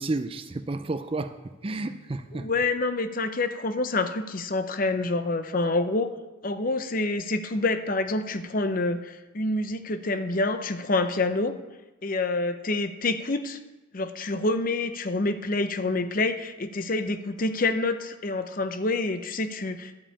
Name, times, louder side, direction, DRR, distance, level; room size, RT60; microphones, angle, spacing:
voice 1, 0.0-1.4 1.6-2.5, right 2 dB, 25° right, 10 dB, 0.4 m, -31 dB
voice 2, 2.3-6.1 6.4-11.5 12.0-13.6 13.9-20.0, left 2 dB, 40° left, 9 dB, 0.7 m, -27 dB
11.5 x 5.5 x 8.5 m, 1.1 s
head